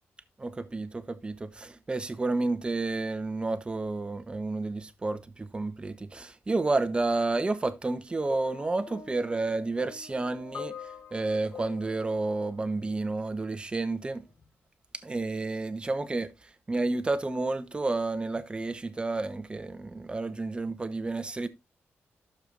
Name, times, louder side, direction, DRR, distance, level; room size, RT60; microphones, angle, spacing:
voice 1, 0.4-10.7 11.1-14.2 15.0-16.3 16.7-21.5, right 3 dB, 20° right, 1.0 m, -30 dB
sound 1, 8.3-13.4 14.3-14.5, left 6 dB, 40° left, 1.3 m, -46 dB
12.5 x 6.8 x 2.6 m
cardioid pair, 110°, 5 cm